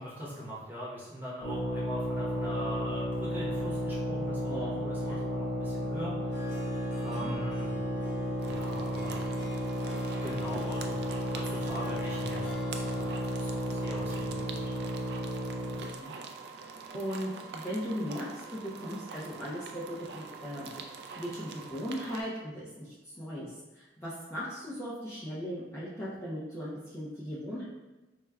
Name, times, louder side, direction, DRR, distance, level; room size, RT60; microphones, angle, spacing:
voice 1, 0.0-7.7 8.4-9.2 10.2-13.1 13.3-14.6, equal, 10° right, -8 dB, 0.8 m, -41 dB
sound 1, 1.4-15.9, equal, 55° left, 0.9 m, -33 dB
Harp, 6.2-14.9, left 2 dB, 75° left, 0.5 m, -49 dB
sound 2, 8.4-22.2, right 5 dB, 65° right, 0.3 m, -45 dB
voice 2, 16.6-20.7 21.2-23.5 23.8-27.6, equal, 15° left, -9 dB, 0.5 m, -38 dB
4.7 x 2.1 x 2.2 m, 1.1 s
head